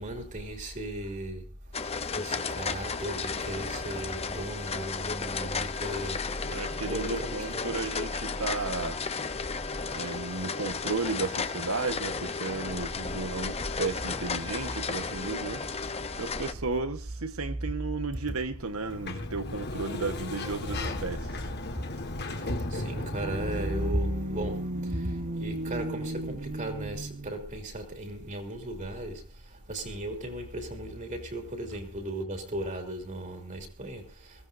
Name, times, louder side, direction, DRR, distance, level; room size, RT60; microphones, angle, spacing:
voice 1, 0.0-1.5 2.1-6.6 6.9-7.8 12.9-13.0 13.5-13.8 14.4-14.8 15.8-16.1 20.4-21.0 21.4-34.5, right 1 dB, 35° right, 3.1 m, -36 dB
sound 1, 1.7-16.5, left 5 dB, 30° left, 0.8 m, -34 dB
voice 2, 6.4-9.0 9.9-15.6 16.2-21.3, right 3 dB, 75° right, 1.4 m, -34 dB
Sliding door, 18.7-24.0, left 2 dB, 50° left, 1.9 m, -36 dB
sound 2, 22.8-27.5, right 1 dB, 55° right, 1.6 m, -35 dB
22.0 x 16.5 x 2.7 m
head